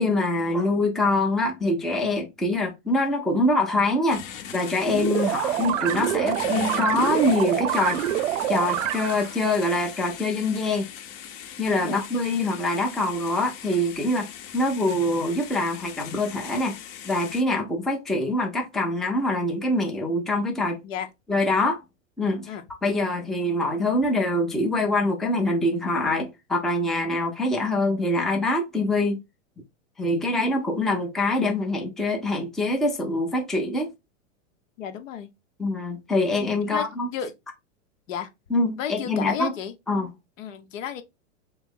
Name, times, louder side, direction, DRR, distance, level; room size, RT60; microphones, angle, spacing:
voice 1, 0.0-8.0 8.5-10.9 11.6-16.8 17.0-20.8 21.3-21.8 22.2-22.5 22.8-29.2 30.0-33.9 35.6-37.1 38.5-39.5 39.9-40.1, left 2 dB, ahead, 0.5 m, -24 dB
sound 1, 4.1-17.4, left 8 dB, 50° left, 0.9 m, -39 dB
sound 2, 4.9-9.3, right 11 dB, 75° right, 0.7 m, -26 dB
voice 2, 34.8-35.3 36.6-36.9 37.1-37.3 38.1-38.3 38.8-39.7 40.4-41.0, left 8 dB, 75° left, 0.9 m, -32 dB
3.2 x 3.1 x 3.6 m
hypercardioid pair, 130°, 39 cm